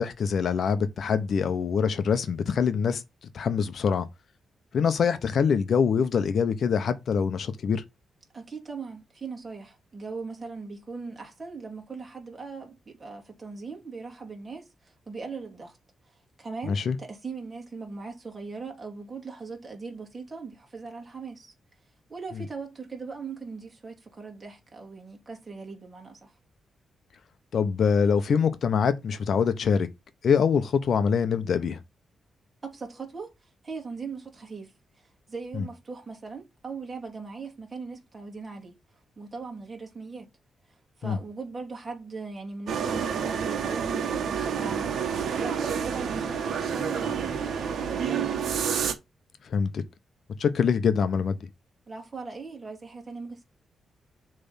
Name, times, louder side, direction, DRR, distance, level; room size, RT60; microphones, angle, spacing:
voice 1, 0.0-3.0 3.3-4.1 4.7-7.8 16.7-17.0 22.4-22.5 27.5-29.9 30.2-31.8 35.5-35.7 41.0-41.2 49.5-49.8 50.4-51.4, left 6 dB, 60° left, 0.9 m, -24 dB
voice 2, 8.3-15.8 16.1-21.5 22.1-26.3 32.6-38.8 39.2-40.3 40.7-48.5 51.9-53.4, right 4 dB, 25° right, 2.6 m, -40 dB
sound 1, 42.7-48.9, right 7 dB, 70° right, 1.4 m, -29 dB
6.9 x 3.4 x 5.7 m
cardioid pair, 125°, 0 cm